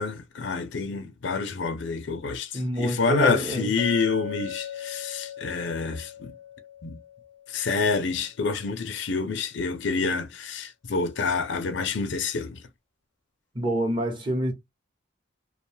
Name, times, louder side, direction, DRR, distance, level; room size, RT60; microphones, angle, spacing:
voice 1, 0.0-6.3 6.8-7.0 7.5-12.6, left 4 dB, 60° left, 0.5 m, -28 dB
voice 2, 2.5-3.7 13.5-14.5, equal, 25° right, 0.9 m, -26 dB
Chink clink, 3.8-8.0, left 7 dB, 85° right, 1.0 m, -39 dB
2.4 x 2.2 x 3.1 m
head